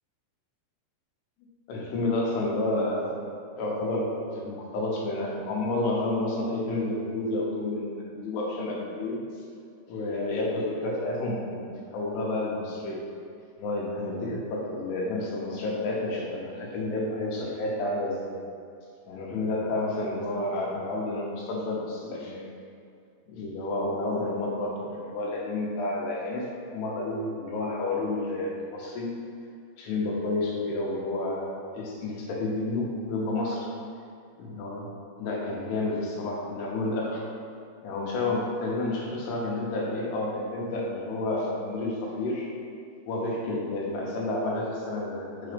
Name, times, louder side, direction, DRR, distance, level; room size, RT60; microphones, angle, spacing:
voice 1, 1.7-3.2 3.6-9.2 9.9-11.7 11.9-13.1 13.6-18.3 19.1-22.4 23.3-29.2 29.8-33.7 34.4-34.9 35.2-37.2 37.8-42.5 43.1-45.5, left 2 dB, 90° left, -2 dB, 3.1 m, -30 dB
6.1 x 3.9 x 5.1 m, 2.4 s
omnidirectional pair, 4.6 m